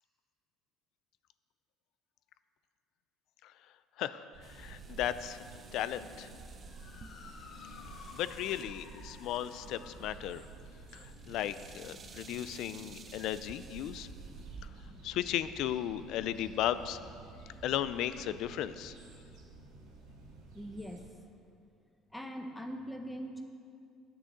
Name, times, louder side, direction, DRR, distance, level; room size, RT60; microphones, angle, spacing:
voice 1, 4.0-5.4 5.7-6.3 8.1-10.4 10.9-14.1 15.0-17.0 17.6-18.9, left 11 dB, 65° left, 14 dB, 0.4 m, -35 dB
sound 1, 4.3-21.1, right 2 dB, 75° right, 2.4 m, -53 dB
sound 2, 4.4-14.7, right 5 dB, 30° right, 0.7 m, -52 dB
Motor vehicle (road) / Siren, 6.5-15.1, left 6 dB, 45° left, 0.8 m, -57 dB
voice 2, 20.5-21.2 22.1-23.4, equal, 5° left, 5 dB, 0.9 m, -42 dB
10.0 x 6.3 x 7.9 m, 2.4 s
cardioid pair, 130°, 0 cm